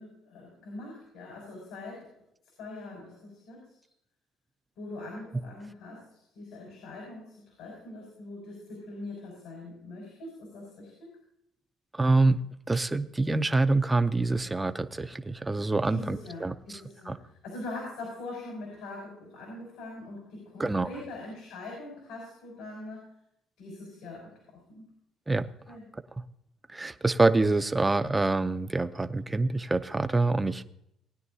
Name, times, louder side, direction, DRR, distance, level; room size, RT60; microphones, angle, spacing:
voice 1, 0.0-2.1 2.6-3.8 4.8-11.2 15.8-23.1 23.6-24.9 25.7-25.8, left 2 dB, 85° left, -2 dB, 5.5 m, -42 dB
voice 2, 11.9-12.4 12.7-16.8 17.1-17.2 20.6-20.9 25.3-25.4 26.7-30.6, right 3 dB, 10° right, 10 dB, 0.5 m, -26 dB
19.5 x 10.5 x 2.7 m, 0.76 s
cardioid pair, 160°, 0 cm